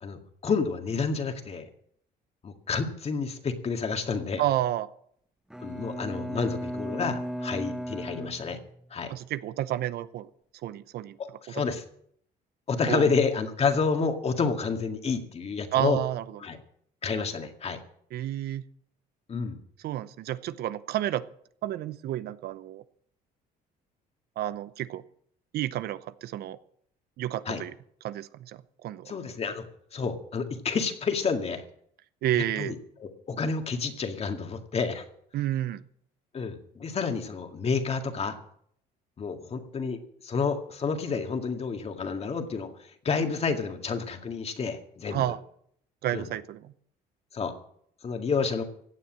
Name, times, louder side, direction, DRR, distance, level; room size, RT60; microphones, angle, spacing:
voice 1, 0.0-1.7 2.4-4.4 5.6-8.6 8.9-9.1 11.2-11.8 12.7-16.0 16.4-16.6 17.0-17.8 19.3-19.6 27.5-27.6 29.1-29.7 29.9-31.6 32.6-35.0 36.3-38.4 39.2-42.7 43.0-45.2 46.1-46.3 47.3-47.5 48.0-48.6, left 5 dB, 35° left, 6 dB, 2.0 m, -29 dB
voice 2, 4.4-4.9 9.1-10.3 10.6-11.2 11.5-11.6 12.9-13.1 15.7-16.2 18.1-18.6 19.8-21.2 21.6-22.8 24.4-25.0 25.5-26.6 27.2-27.7 28.0-29.1 32.2-32.7 35.3-35.8 45.1-45.4 46.0-46.7, right 13 dB, 70° right, 15 dB, 0.7 m, -30 dB
Bowed string instrument, 5.5-9.1, equal, 5° right, 1.1 m, -36 dB
16.0 x 8.5 x 7.5 m, 0.66 s
cardioid pair, 110°, 17 cm